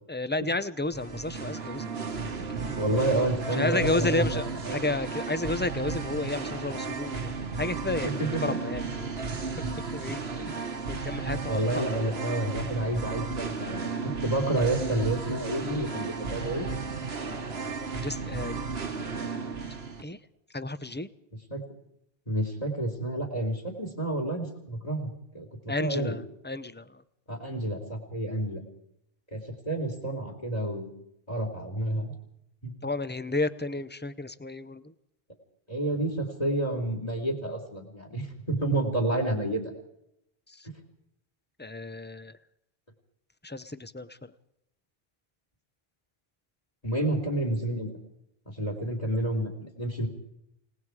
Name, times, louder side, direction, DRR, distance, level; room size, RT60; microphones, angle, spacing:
voice 1, 0.1-2.0 3.6-7.3 7.6-9.1 9.9-10.2 10.9-11.8 18.0-18.6 20.0-20.2 20.5-21.1 25.7-27.0 32.8-34.8 41.6-42.3 43.4-44.1, left 2 dB, 10° left, 14 dB, 0.7 m, -31 dB
Singing, 0.9-20.0, right 4 dB, 80° right, 1.7 m, -34 dB
voice 2, 2.6-4.9 8.0-8.6 10.4-10.5 11.5-16.7 21.5-21.6 22.3-26.2 27.3-28.6 29.3-30.9 31.3-32.1 32.6-32.7 35.7-39.6 46.8-47.9 48.5-50.1, right 1 dB, 40° left, 4 dB, 3.9 m, -30 dB
29.0 x 18.5 x 4.9 m, 0.78 s
omnidirectional pair, 1.0 m